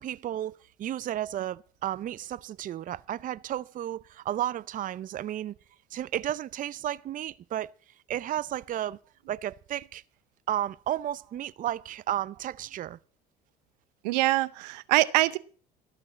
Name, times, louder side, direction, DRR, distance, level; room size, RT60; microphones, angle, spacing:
voice 1, 0.0-5.6 5.9-7.7 8.1-9.0 9.3-10.0 10.5-13.0, right 12 dB, 40° right, 0.6 m, -33 dB
voice 2, 14.0-15.4, right 19 dB, 80° right, 0.7 m, -24 dB
14.0 x 5.9 x 8.7 m
hypercardioid pair, 70°, 21 cm